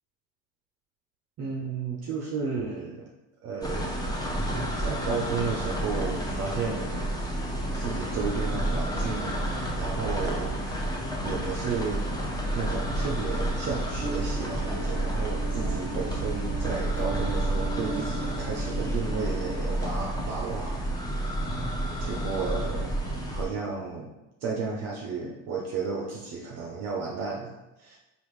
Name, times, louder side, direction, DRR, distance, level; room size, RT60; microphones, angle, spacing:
voice 1, 1.4-3.1 3.4-4.0 4.8-7.1 7.7-9.4 9.8-10.6 10.9-12.1 12.5-20.9 21.1-21.4 22.0-23.0 23.3-24.1 24.4-28.0, right 5 dB, 45° right, -2 dB, 0.6 m, -33 dB
sound 1, 3.6-23.5, right 1 dB, 10° left, 0.7 m, -30 dB
Guitar, 14.0-19.6, right 3 dB, 25° right, 0.9 m, -38 dB
3.4 x 2.4 x 3.1 m, 1.0 s
supercardioid pair, 85°, 36 cm